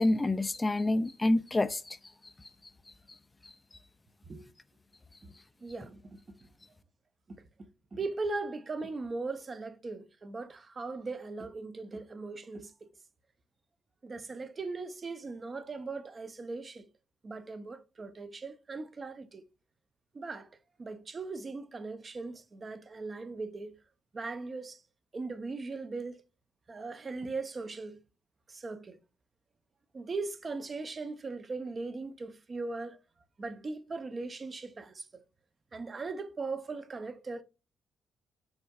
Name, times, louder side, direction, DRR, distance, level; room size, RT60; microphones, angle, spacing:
voice 1, 0.0-2.0 2.2-2.3 3.4-3.5, left 2 dB, 20° left, 0.3 m, -28 dB
voice 2, 5.6-6.4 7.3-7.5 7.9-12.9 14.0-16.9 17.2-19.4 20.1-20.5 20.8-23.8 24.1-24.8 25.1-26.2 26.7-28.0 28.5-29.0 29.9-33.0 33.4-35.2 35.7-37.4, right 3 dB, 35° right, 0.6 m, -39 dB
5.5 x 3.5 x 2.3 m
cardioid pair, 90°, 0 cm